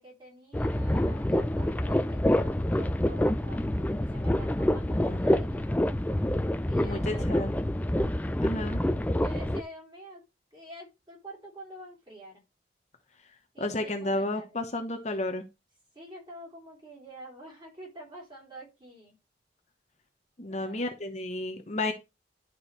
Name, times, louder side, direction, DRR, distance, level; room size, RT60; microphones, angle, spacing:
voice 1, 0.0-5.8 6.7-7.3 9.2-10.2 10.5-12.4 13.5-14.7 15.9-19.2 20.5-21.0, equal, 25° right, -2 dB, 3.4 m, -48 dB
sound 1, 0.5-9.6, left 1 dB, 10° left, 0.3 m, -27 dB
voice 2, 4.9-5.2 6.8-7.5 8.4-8.8 13.6-15.4 20.4-21.9, left 2 dB, 40° left, 5 dB, 0.9 m, -32 dB
11.0 x 4.6 x 3.2 m, 0.25 s
head